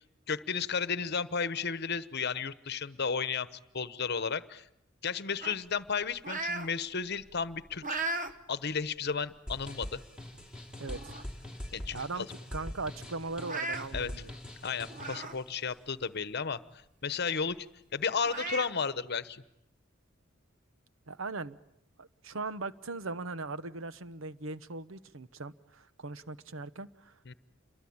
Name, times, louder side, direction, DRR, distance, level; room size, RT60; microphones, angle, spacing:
voice 1, 0.3-3.5 3.7-4.7 5.0-8.0 8.5-10.0 11.7-12.3 13.9-14.1 14.6-16.6 17.0-17.7 17.9-19.4 27.3-27.4, left 5 dB, 55° left, 1.1 m, -33 dB
sound 1, 5.4-6.7 7.1-8.3 8.8-9.0 9.9-10.0 10.4-10.5 10.8-11.4 11.7-11.8 12.1-12.2 13.3-13.9 14.9-15.4 15.8-15.9 17.5-17.6 18.2-18.7, right 2 dB, 40° right, 1.4 m, -37 dB
sound 2, 9.5-15.3, left 1 dB, 5° right, 3.1 m, -43 dB
voice 2, 10.8-11.1 11.9-12.3 12.5-14.3 21.1-21.6 22.0-27.3, right 3 dB, 75° right, 1.0 m, -39 dB
28.5 x 23.0 x 8.7 m
head